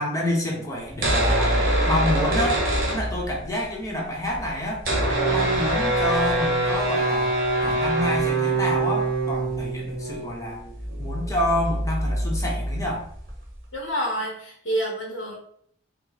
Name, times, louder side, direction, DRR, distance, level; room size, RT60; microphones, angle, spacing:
voice 1, 0.0-2.6 2.9-4.8 5.3-7.3 7.6-10.6 11.0-13.0, left 1 dB, 15° left, -1 dB, 1.0 m, -28 dB
sound 1, 0.9-3.6 3.9-4.0 4.1-13.6, right 1 dB, 45° right, 1.5 m, -24 dB
voice 2, 13.7-15.4, right 1 dB, 80° left, -1 dB, 1.1 m, -28 dB
5.4 x 2.3 x 4.0 m, 0.64 s
head